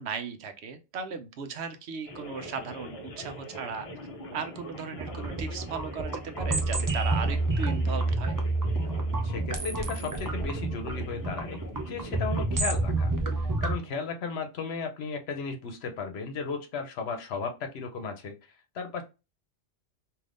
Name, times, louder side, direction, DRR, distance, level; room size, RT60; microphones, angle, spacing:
voice 1, 0.0-3.9 4.3-8.3, right 5 dB, 70° right, 8 dB, 0.9 m, -37 dB
sound 1, 2.1-12.5, equal, 40° left, 0.6 m, -43 dB
sound 2, 5.0-13.7, right 2 dB, 30° right, 0.4 m, -29 dB
voice 2, 9.2-11.6 11.9-18.3 18.7-19.0, left 5 dB, 65° left, 5 dB, 0.9 m, -35 dB
3.4 x 2.7 x 2.5 m, 0.28 s
omnidirectional pair, 1.2 m